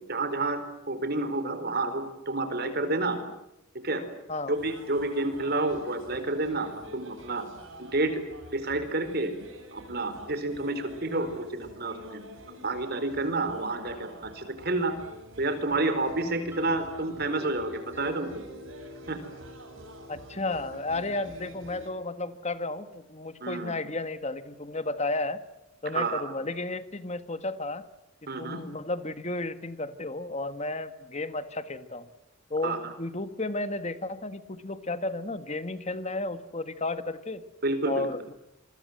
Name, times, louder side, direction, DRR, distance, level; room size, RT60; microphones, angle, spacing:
voice 1, 0.1-0.6 0.9-3.2 3.8-4.0 4.5-7.4 7.8-8.2 8.5-9.3 9.7-12.2 12.5-14.9 15.4-18.4 19.1-19.2 23.4-23.7 25.9-26.2 28.3-28.6 32.6-32.8 37.6-38.1, right 2 dB, 50° right, 9 dB, 4.3 m, -29 dB
sound 1, 4.5-21.9, equal, 70° right, 7.8 m, -48 dB
sound 2, 15.8-23.5, equal, 10° right, 5.6 m, -48 dB
voice 2, 20.1-25.4 25.8-27.9 28.2-32.1 32.5-37.4 37.8-38.3, left 2 dB, 35° left, 11 dB, 1.5 m, -33 dB
27.5 x 23.0 x 7.9 m, 0.87 s
head